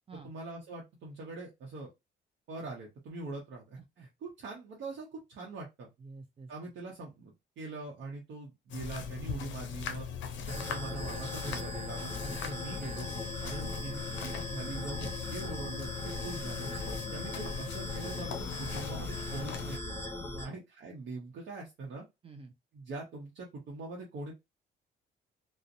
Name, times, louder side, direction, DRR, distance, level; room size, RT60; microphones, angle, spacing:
voice 1, 0.2-1.9 2.5-5.9 6.5-10.1 10.4-13.1 13.4-16.7 17.1-20.0 20.4-22.0 22.7-24.3, right 3 dB, 70° right, 0.7 m, -43 dB
voice 2, 3.8-4.1 6.0-6.5 20.2-20.6 22.2-22.5, right 3 dB, 30° right, 0.4 m, -49 dB
sound 1, 8.7-19.8, left 6 dB, 70° left, 0.5 m, -40 dB
sound 2, 10.5-20.5, left 1 dB, 15° left, 0.8 m, -40 dB
2.5 x 2.0 x 2.5 m
cardioid pair, 90°, 20 cm